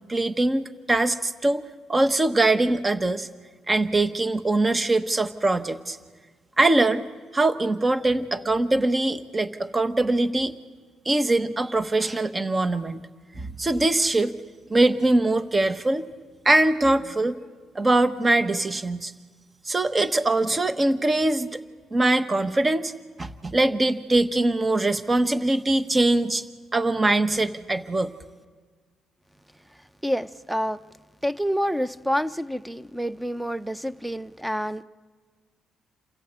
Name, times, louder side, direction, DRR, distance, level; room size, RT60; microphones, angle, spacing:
voice 1, 0.1-1.6 1.9-3.3 3.7-6.0 6.6-7.0 7.3-10.5 11.0-13.0 13.4-14.3 14.7-16.0 16.4-17.4 17.7-19.1 19.7-21.6 21.9-22.9 23.2-26.4 26.7-28.1, right 2 dB, 25° right, 1.1 m, -22 dB
voice 2, 30.0-30.8 31.2-34.8, equal, 5° right, 0.7 m, -28 dB
28.5 x 15.0 x 8.2 m
cardioid pair, 90°, 0 cm